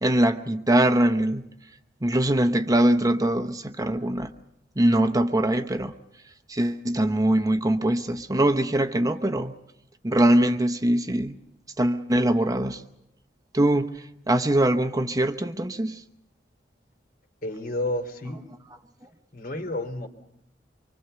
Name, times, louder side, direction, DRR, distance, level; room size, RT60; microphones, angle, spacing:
voice 1, 0.0-1.5 2.0-4.3 4.8-5.9 6.5-9.5 10.0-11.4 11.8-12.9 13.5-16.0, right 1 dB, 20° right, 0.8 m, -22 dB
voice 2, 17.4-18.4 19.3-20.1, left 1 dB, 55° left, 3.3 m, -30 dB
25.5 x 24.5 x 6.9 m
head